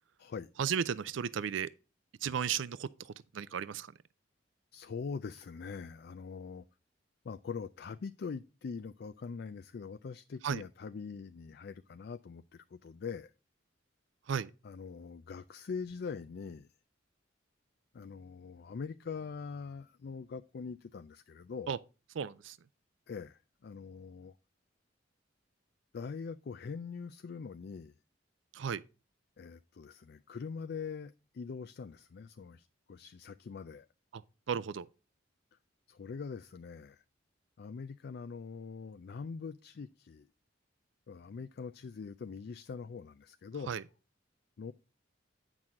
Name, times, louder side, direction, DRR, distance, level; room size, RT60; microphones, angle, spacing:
voice 1, 0.6-1.7 2.2-3.9 10.4-10.6 14.3-14.5 21.7-21.8 22.1-22.6 28.5-28.8 34.1-34.9 43.7-43.8, right 7 dB, 70° right, 0.4 m, -35 dB
voice 2, 4.7-6.6 7.2-13.3 14.6-16.7 17.9-21.7 23.1-24.3 25.9-27.9 29.4-33.9 35.9-37.0 37.6-40.3 41.1-43.8 44.6-44.7, left 5 dB, 55° left, 0.4 m, -43 dB
8.9 x 6.1 x 3.5 m
head